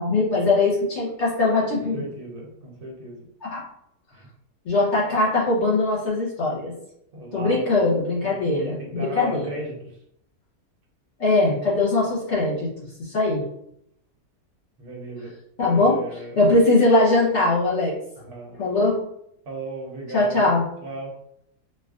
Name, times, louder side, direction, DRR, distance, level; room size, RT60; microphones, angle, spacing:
voice 1, 0.0-2.0 3.4-3.6 4.7-6.7 7.3-9.5 11.2-12.7 13.0-13.4 15.6-16.0 16.4-17.9 18.6-19.0 20.1-20.6, left 2 dB, 50° left, -6 dB, 1.0 m, -21 dB
voice 2, 1.9-3.2 4.1-4.3 7.1-7.8 8.2-9.9 14.8-15.3 15.6-16.4 18.2-18.5 19.5-20.5 20.8-21.1, right 2 dB, 70° right, -1 dB, 1.3 m, -36 dB
4.4 x 2.3 x 2.4 m, 0.74 s
omnidirectional pair, 1.7 m